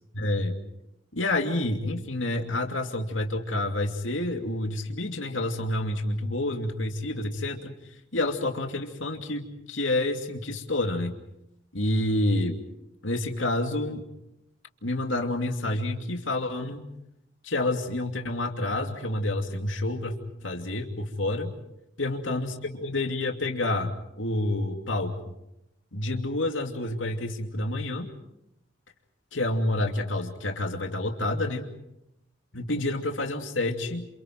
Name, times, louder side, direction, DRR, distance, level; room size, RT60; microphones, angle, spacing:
voice 1, 0.1-0.6 1.1-7.7 8.1-11.1 11.7-12.6 13.0-14.0 14.8-16.8 17.4-21.5 22.0-23.9 24.2-25.1 25.9-28.1 29.3-31.7 32.5-34.1, left 1 dB, 80° left, 4 dB, 2.7 m, -28 dB
28.5 x 28.0 x 4.6 m, 0.84 s
head